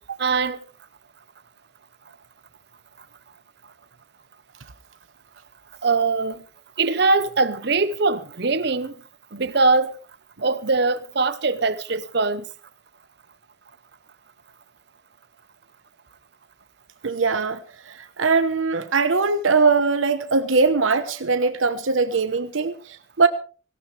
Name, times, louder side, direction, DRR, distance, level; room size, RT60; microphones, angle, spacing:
voice 1, 0.2-0.6 5.8-6.4 6.8-8.9 9.3-9.9 10.4-12.4, right 3 dB, 55° right, 1.0 m, -22 dB
voice 2, 17.0-17.6 17.9-23.3, right 4 dB, 85° right, 1.1 m, -21 dB
18.5 x 17.0 x 3.3 m
head